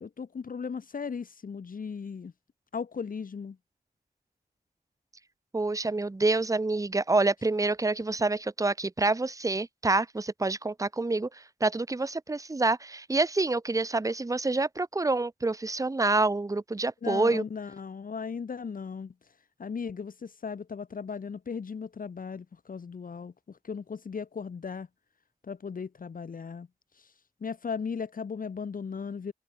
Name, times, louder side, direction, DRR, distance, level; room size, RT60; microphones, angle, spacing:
voice 1, 0.0-2.3 2.7-3.6 17.0-19.1 19.6-24.9 25.5-26.7 27.0-27.1 27.4-29.3, left 5 dB, 65° left, 1.0 m, -37 dB
voice 2, 5.5-11.3 11.6-17.4, right 3 dB, 20° right, 0.8 m, -27 dB
wide cardioid pair, 105°, 15 cm